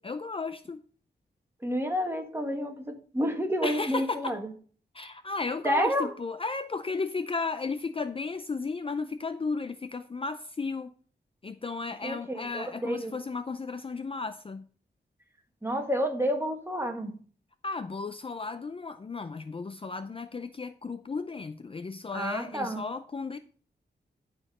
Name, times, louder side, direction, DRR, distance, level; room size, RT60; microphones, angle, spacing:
voice 1, 0.0-0.8 3.6-4.4 4.9-10.9 11.4-14.7 17.6-23.4, left 4 dB, 30° left, 10 dB, 0.5 m, -34 dB
voice 2, 1.6-4.4 5.6-6.1 12.0-13.1 15.6-17.1 22.1-22.8, equal, 15° right, 4 dB, 1.6 m, -29 dB
11.5 x 4.4 x 5.4 m, 0.43 s
wide cardioid pair, 120°, 18 cm